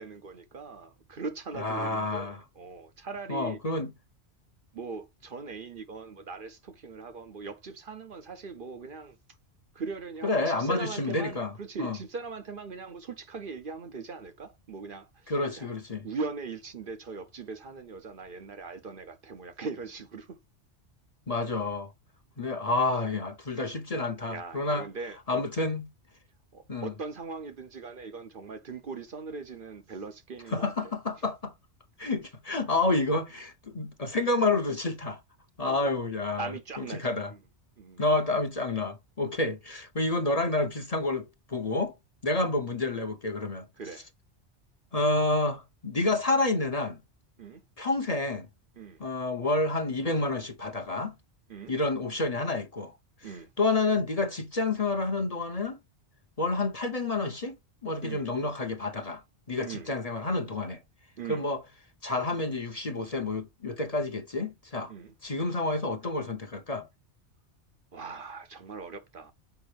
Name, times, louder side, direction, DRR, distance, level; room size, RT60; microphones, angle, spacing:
voice 1, 0.0-3.6 4.7-9.2 9.7-15.7 16.0-20.4 24.3-25.4 26.5-30.7 35.6-35.8 36.4-37.4 37.8-38.0 42.3-42.5 43.8-44.0 47.4-47.6 48.8-49.0 51.5-51.7 53.2-53.5 58.0-58.3 59.6-59.9 61.2-61.4 64.9-65.1 67.9-69.3, right 4 dB, 50° right, 0.9 m, -40 dB
voice 2, 1.6-2.4 3.3-3.9 10.2-11.5 11.8-12.0 15.3-16.1 21.3-21.9 22.4-24.9 25.3-25.9 26.7-26.9 30.5-31.5 32.0-35.2 35.6-37.3 38.0-41.9 42.2-43.7 44.9-47.0 47.8-48.5 49.0-51.1 51.7-52.9 53.6-55.8 56.4-57.6 57.8-59.2 59.5-60.8 61.3-61.6 62.0-64.9 65.2-66.9, left 2 dB, 35° left, 0.9 m, -29 dB
7.0 x 5.2 x 3.3 m
omnidirectional pair, 1.2 m